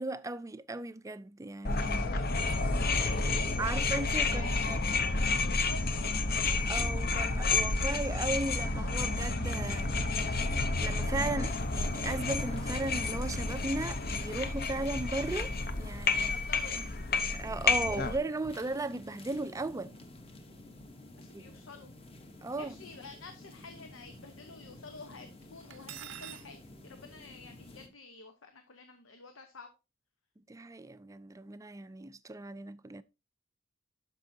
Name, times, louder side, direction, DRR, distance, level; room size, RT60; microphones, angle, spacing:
voice 1, 0.0-2.1 3.6-4.8 6.7-16.4 17.3-19.9 21.3-21.5 22.4-22.8 30.5-33.0, right 2 dB, 15° right, 0.4 m, -37 dB
sound 1, 1.6-18.2, left 3 dB, 50° left, 0.8 m, -30 dB
voice 2, 1.9-3.9 4.3-6.1 16.3-16.8 21.2-21.9 22.5-29.7, left 4 dB, 90° left, 1.0 m, -50 dB
sound 2, 11.5-27.9, left 1 dB, 30° left, 1.0 m, -51 dB
Cutlery silverware, 25.7-26.5, right 10 dB, 70° right, 0.6 m, -44 dB
12.5 x 5.4 x 2.7 m
head